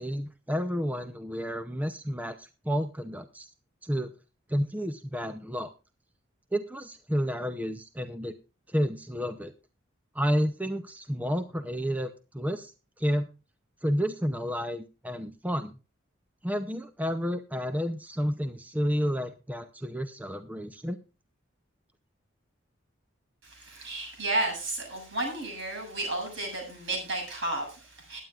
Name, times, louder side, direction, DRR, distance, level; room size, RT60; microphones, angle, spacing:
voice 1, 0.0-3.5 3.8-4.1 4.5-5.7 6.5-8.3 8.7-9.5 10.1-13.3 13.8-15.8 16.4-21.0, equal, 10° right, 9 dB, 0.6 m, -31 dB
voice 2, 23.4-28.2, right 2 dB, 65° right, 1 dB, 7.3 m, -32 dB
21.5 x 9.3 x 2.4 m, 0.32 s
head